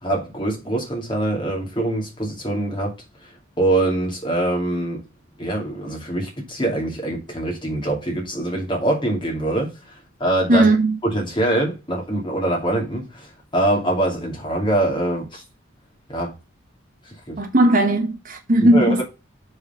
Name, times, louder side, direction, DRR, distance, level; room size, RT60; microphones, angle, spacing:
voice 1, 0.0-2.9 3.2-3.3 3.6-5.0 5.4-9.7 10.2-10.7 11.0-15.4 16.1-16.3 17.3-17.4 18.7-19.0, right 1 dB, 25° left, 2.5 m, -23 dB
voice 2, 10.5-11.0 17.4-19.0, right 1 dB, 40° right, 1.1 m, -17 dB
5.6 x 4.8 x 5.7 m
head